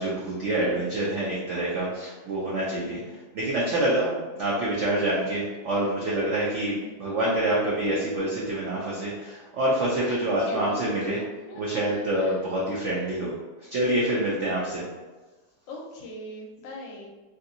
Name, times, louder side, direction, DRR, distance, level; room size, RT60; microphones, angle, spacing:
voice 1, 0.0-11.2 11.5-14.8, right 1 dB, 85° right, -5 dB, 0.6 m, -27 dB
voice 2, 2.8-3.3 5.1-5.2 10.1-11.6 11.9-12.3 15.7-17.1, left 1 dB, 90° left, -1 dB, 1.4 m, -40 dB
3.3 x 2.7 x 2.5 m, 1.2 s
omnidirectional pair, 2.0 m